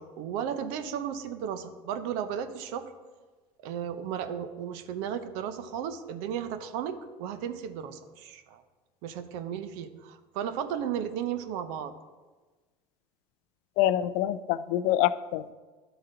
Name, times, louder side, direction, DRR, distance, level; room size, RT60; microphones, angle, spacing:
voice 1, 0.0-2.9 3.6-8.6 9.0-11.9, right 8 dB, 70° right, 10 dB, 0.7 m, -34 dB
voice 2, 13.8-15.5, left 12 dB, 65° left, 16 dB, 0.4 m, -26 dB
11.0 x 4.0 x 3.9 m, 1.3 s
supercardioid pair, 95°, 12 cm